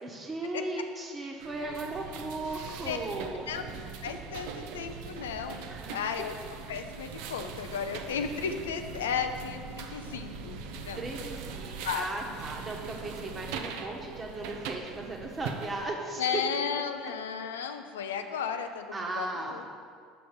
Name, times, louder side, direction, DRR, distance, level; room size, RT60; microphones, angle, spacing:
voice 1, 0.0-3.5 5.7-6.0 10.9-16.4 18.9-19.6, right 2 dB, 25° right, 1 dB, 1.2 m, -36 dB
sound 1, 1.4-15.9, right 5 dB, 70° right, 0.5 m, -41 dB
voice 2, 4.0-6.3 6.7-11.0 11.8-12.0 16.2-19.7, left 7 dB, 85° left, 7 dB, 0.4 m, -34 dB
5.7 x 5.3 x 5.1 m, 2.1 s
hypercardioid pair, 80°, 0 cm